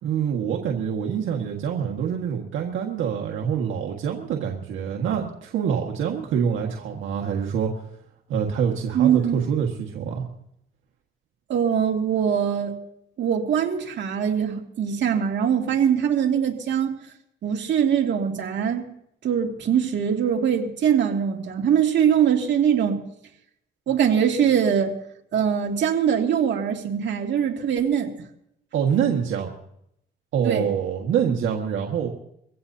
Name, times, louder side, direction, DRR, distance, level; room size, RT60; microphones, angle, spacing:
voice 1, 0.0-7.7 8.3-10.2 28.7-29.5 30.3-32.1, right 7 dB, 85° right, 1.8 m, -25 dB
voice 2, 8.9-9.4 11.5-12.7 13.2-16.9 17.4-18.9 19.2-23.0 23.9-24.9 25.3-28.1 30.4-30.7, right 8 dB, 65° right, 2.4 m, -22 dB
23.5 x 16.5 x 2.8 m
cardioid pair, 90°, 20 cm